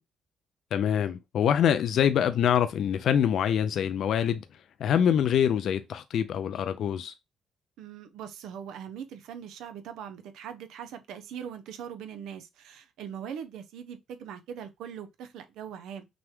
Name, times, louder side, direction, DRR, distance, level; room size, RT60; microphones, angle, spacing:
voice 1, 0.7-4.4 4.8-7.1, left 9 dB, 70° left, 0.4 m, -25 dB
voice 2, 7.8-16.1, right 8 dB, 90° right, 0.6 m, -41 dB
6.0 x 2.2 x 3.5 m
cardioid pair, 90°, 0 cm